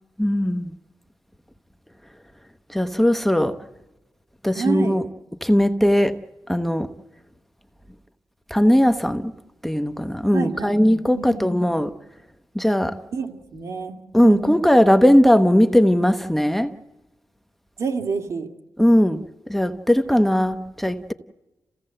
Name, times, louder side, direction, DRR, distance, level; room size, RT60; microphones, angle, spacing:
voice 1, 0.2-0.7 2.7-3.6 4.4-5.1 5.4-6.2 6.5-6.9 8.5-9.3 9.6-11.9 12.5-13.0 14.1-16.7 18.8-21.1, equal, 5° left, 0.9 m, -18 dB
voice 2, 4.5-5.0 10.3-10.9 11.1-11.6 13.1-14.4 17.8-18.5, right 5 dB, 60° right, 2.4 m, -28 dB
29.0 x 16.5 x 7.8 m
cardioid pair, 100°, 6 cm